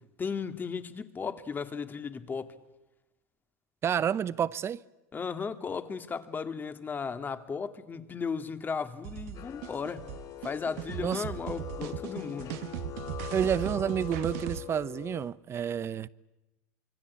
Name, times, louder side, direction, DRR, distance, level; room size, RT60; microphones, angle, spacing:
voice 1, 0.0-2.5 5.1-10.1 10.4-12.6, left 5 dB, 25° left, 2.0 m, -35 dB
voice 2, 3.8-4.8 11.0-11.2 13.3-16.1, right 8 dB, 30° right, 0.8 m, -29 dB
sound 1, 9.0-14.6, right 12 dB, 70° right, 1.5 m, -38 dB
sound 2, 9.3-15.3, left 12 dB, 45° left, 1.5 m, -43 dB
26.0 x 24.0 x 8.4 m
supercardioid pair, 105°, 8 cm